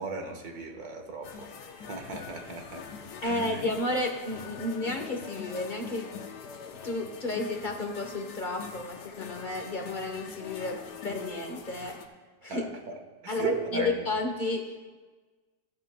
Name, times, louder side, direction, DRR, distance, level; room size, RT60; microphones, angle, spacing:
voice 1, 0.0-1.5 1.9-2.9 3.2-3.6 12.5-13.0 13.2-13.9, right 4 dB, 60° right, 3 dB, 1.7 m, -36 dB
sound 1, 1.2-12.1, left 6 dB, 75° left, 1.4 m, -43 dB
voice 2, 3.2-6.1 6.6-12.0 12.4-12.7 13.3-15.0, left 2 dB, 35° left, 3 dB, 0.9 m, -32 dB
14.5 x 12.0 x 2.2 m, 1.3 s
omnidirectional pair, 1.9 m